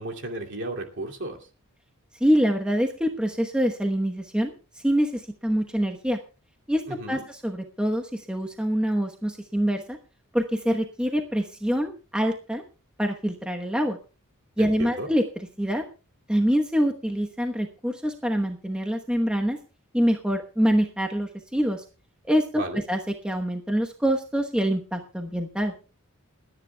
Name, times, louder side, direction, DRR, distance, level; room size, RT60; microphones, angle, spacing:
voice 1, 0.0-1.4 6.9-7.2 14.6-15.1 22.5-22.8, right 1 dB, 55° right, 2 dB, 2.6 m, -34 dB
voice 2, 2.2-4.5 4.8-6.2 6.7-6.8 7.1-10.0 10.3-12.6 13.0-14.0 14.6-15.2 15.6-15.8 16.3-19.6 19.9-21.8 22.3-22.6 22.9-23.0 23.2-25.7, equal, 5° right, 3 dB, 1.0 m, -25 dB
29.0 x 9.9 x 2.3 m, 0.32 s
head